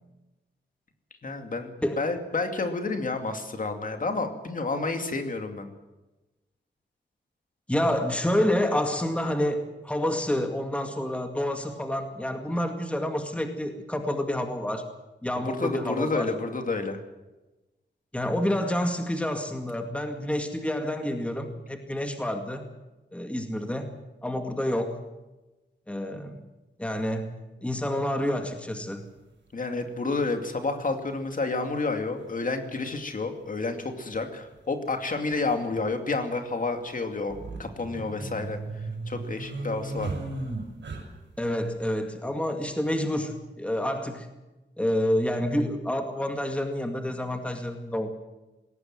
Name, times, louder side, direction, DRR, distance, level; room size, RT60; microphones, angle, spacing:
voice 1, 1.2-5.7 15.3-17.0 29.5-40.1, left 3 dB, 45° left, 5 dB, 2.5 m, -30 dB
voice 2, 7.7-14.8 15.2-16.3 18.1-22.6 23.1-23.9 24.2-25.0 25.9-26.4 26.8-27.3 27.6-29.1 41.4-44.3 44.8-48.1, left 1 dB, 5° left, 5 dB, 2.1 m, -28 dB
sound 1, 28.8-28.9 30.4-30.5 31.9-32.0 32.2-32.3 34.1-34.3 34.5-34.6 35.3-35.8 37.2-41.4, right 3 dB, 80° right, 6.1 m, -35 dB
20.5 x 18.0 x 7.7 m, 1.1 s
wide cardioid pair, 160°, 19 cm